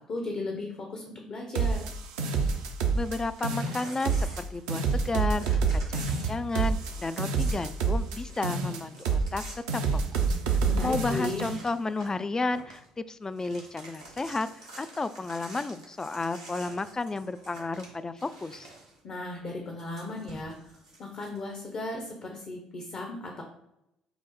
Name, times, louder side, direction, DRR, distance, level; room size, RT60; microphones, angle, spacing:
voice 1, 0.1-1.8 10.7-11.5 19.0-20.5 21.0-23.4, left 2 dB, 45° left, 2 dB, 0.8 m, -36 dB
sound 1, 1.5-3.2 3.4-4.4 4.7-8.2 8.4-9.4 9.7-11.6, right 5 dB, 70° right, 0.5 m, -27 dB
voice 2, 2.9-9.4 9.7-14.5 14.8-18.7, left 3 dB, 20° left, 13 dB, 0.3 m, -32 dB
Crumpling crinkling / Tearing, 2.9-5.1 5.4-10.5 10.8-10.9 11.2-12.2 12.5-12.9 13.2-19.0 19.8-21.4, right 2 dB, 90° right, 0.9 m, -48 dB
5.8 x 2.0 x 4.0 m, 0.83 s
figure-of-eight pair, 50°, 3 cm